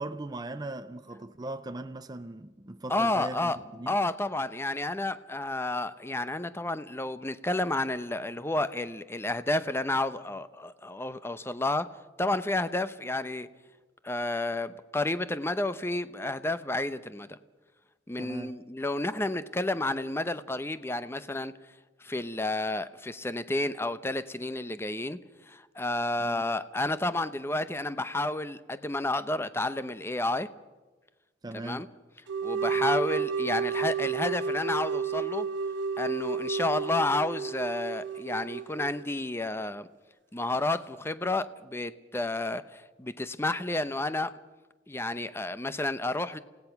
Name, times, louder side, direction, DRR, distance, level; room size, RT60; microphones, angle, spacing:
voice 1, 0.0-4.0 18.2-18.6 26.2-26.4 31.4-31.9 32.7-32.9, right 2 dB, 20° right, 0.6 m, -39 dB
voice 2, 2.9-3.6 3.9-13.5 14.0-17.4 18.1-21.5 22.0-25.2 25.5-30.5 31.6-31.9 32.4-35.5 36.0-39.9 40.3-44.4 44.9-46.4, left 2 dB, 15° left, 0.7 m, -31 dB
sound 1, 32.3-39.0, right 5 dB, 85° right, 1.2 m, -31 dB
28.5 x 17.0 x 5.9 m
head